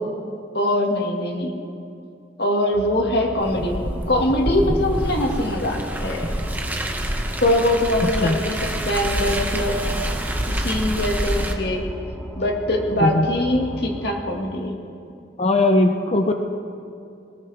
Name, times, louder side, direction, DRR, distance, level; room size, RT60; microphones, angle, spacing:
voice 1, 0.5-1.6 2.4-6.4 7.4-8.6 8.8-9.8 10.5-11.8 12.4-14.7, left 1 dB, 65° left, 1 dB, 1.9 m, -22 dB
sound 1, 2.7-14.1, equal, 10° left, 1.6 m, -36 dB
Car, 3.4-11.5, right 1 dB, 10° right, 1.1 m, -27 dB
voice 2, 15.4-16.3, left 2 dB, 35° left, 5 dB, 0.7 m, -19 dB
21.5 x 19.0 x 3.4 m, 2.6 s
head